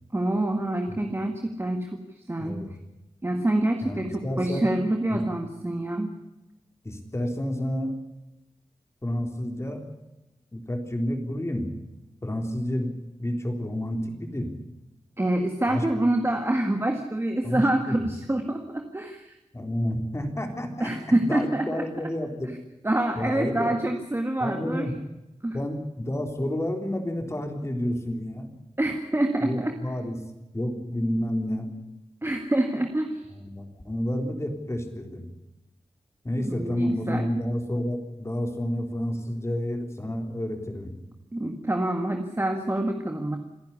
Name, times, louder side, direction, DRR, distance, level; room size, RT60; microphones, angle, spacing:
voice 1, 0.1-2.6 3.2-6.1 15.2-19.4 20.8-21.9 22.8-24.9 25.4-25.6 28.8-29.8 32.2-33.3 36.4-37.3 41.3-43.4, right 1 dB, 20° right, 4 dB, 1.9 m, -26 dB
voice 2, 2.4-2.7 3.8-4.7 5.1-5.2 6.8-7.9 9.0-9.8 10.5-11.7 12.2-12.9 13.2-14.5 15.7-15.9 17.4-18.0 19.5-22.5 23.1-23.8 24.4-24.9 25.5-28.5 29.4-30.2 30.5-31.7 33.3-35.3 36.2-40.9, left 1 dB, 25° left, 4 dB, 3.7 m, -30 dB
27.5 x 10.5 x 9.9 m, 0.97 s
wide cardioid pair, 95°, 12 cm